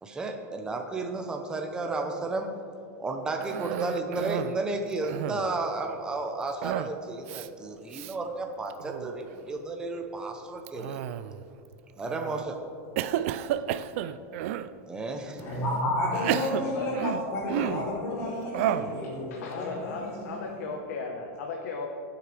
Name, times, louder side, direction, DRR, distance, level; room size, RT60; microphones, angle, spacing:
voice 1, 0.0-2.5 3.0-11.0 12.0-12.6 14.9-15.4, right 3 dB, 10° right, 3 dB, 0.8 m, -33 dB
Cough, 3.4-4.6 4.9-5.6 6.6-7.0 7.3-7.5 7.9-8.1 8.7-9.1 10.7-11.5 12.1-12.4 13.0-14.7 15.4-15.5 16.1-17.9 18.5-19.0, right 11 dB, 55° right, 0.4 m, -32 dB
voice 2, 15.4-20.3, left 1 dB, 40° left, -9 dB, 3.2 m, -31 dB
voice 3, 16.2-16.9 18.8-18.9 19.3-21.9, left 4 dB, 75° left, 1 dB, 1.3 m, -36 dB
21.0 x 7.8 x 3.4 m, 2.6 s
supercardioid pair, 160°, 8 cm